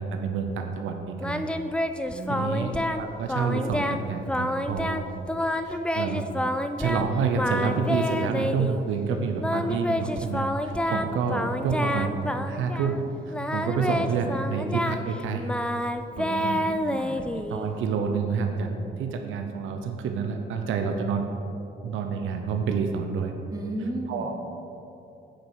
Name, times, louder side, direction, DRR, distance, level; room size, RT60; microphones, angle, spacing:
voice 1, 0.0-1.5 2.3-2.7 3.0-5.0 5.6-6.2 6.8-15.5 16.2-16.7 17.2-18.7 19.0-21.3 21.8-23.3 24.1-24.3, right 5 dB, 80° right, 4 dB, 0.7 m, -28 dB
Singing, 1.2-3.0 3.3-4.0 4.3-7.1 7.3-8.8 9.4-13.0 13.3-17.7, left 1 dB, 5° left, 0.4 m, -28 dB
voice 2, 2.1-2.6 10.8-11.1 11.5-11.6 16.1-17.2 23.5-24.3, right 1 dB, 20° right, 0 dB, 1.4 m, -35 dB
10.0 x 5.3 x 4.7 m, 2.8 s
cardioid pair, 90°, 20 cm